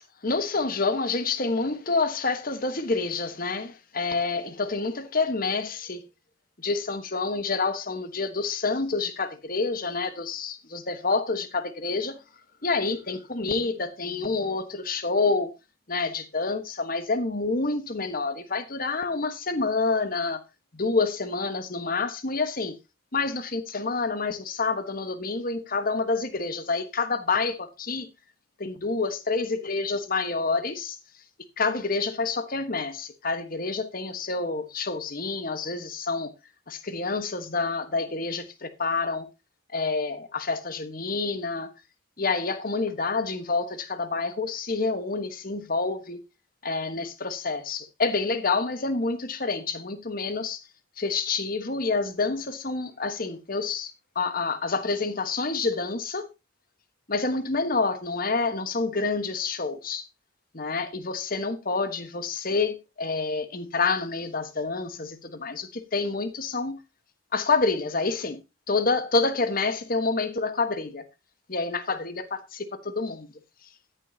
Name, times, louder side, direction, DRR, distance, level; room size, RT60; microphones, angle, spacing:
voice 1, 0.2-6.1 6.6-12.2 12.6-15.5 15.9-20.4 20.7-22.7 23.1-28.1 28.6-31.0 31.6-36.3 36.7-39.3 39.7-41.7 42.2-46.2 46.6-50.6 51.0-56.3 57.1-60.1 60.5-66.8 67.3-68.4 68.7-71.0 71.5-73.3, left 3 dB, 40° left, 1.3 m, -28 dB
14.0 x 10.0 x 2.8 m
head